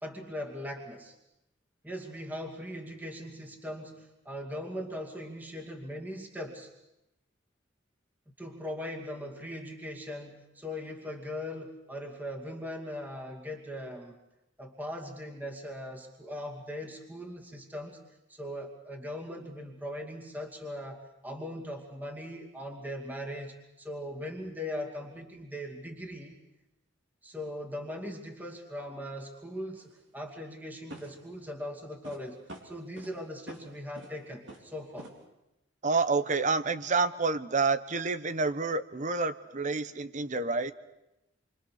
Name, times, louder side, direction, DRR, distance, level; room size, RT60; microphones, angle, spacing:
voice 1, 0.0-1.1 1.8-6.7 8.4-14.2 14.6-18.0 18.3-26.4 27.2-35.1, left 1 dB, 10° right, 0 dB, 2.5 m, -40 dB
sound 1, 29.7-29.9 30.9-31.3 32.0-32.2 32.5-33.1 33.5-33.6 33.9-34.2 34.5-34.7 35.0-35.1, right 1 dB, 75° right, 3.9 m, -46 dB
voice 2, 35.8-40.7, right 4 dB, 40° right, 13 dB, 1.0 m, -28 dB
28.0 x 25.0 x 6.5 m, 0.90 s
head